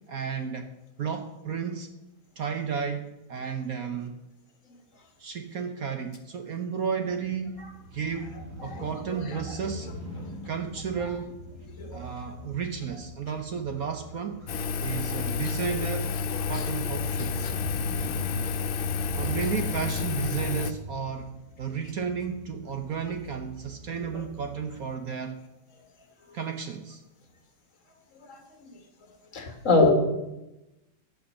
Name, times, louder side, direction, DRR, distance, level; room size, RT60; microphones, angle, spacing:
voice 1, 0.1-0.7 1.0-1.9 2.4-4.2 5.2-7.6 7.9-9.9 10.4-11.4 11.9-14.4 14.8-16.1 16.5-17.5 19.1-21.3 21.6-25.4 26.3-27.0, right 6 dB, 60° right, 6 dB, 1.1 m, -33 dB
Crow / Motorcycle, 7.1-24.9, right 1 dB, 35° right, 2.3 m, -43 dB
voice 2, 8.6-9.2 11.8-12.0 16.5-16.6 17.4-17.5 18.4-18.5 24.0-24.2 28.3-28.4 29.3-29.9, left 3 dB, 40° left, 3 dB, 2.2 m, -25 dB
Engine, 14.5-20.7, left 5 dB, 90° left, 1.5 m, -30 dB
11.0 x 8.7 x 6.4 m, 0.97 s
omnidirectional pair, 2.1 m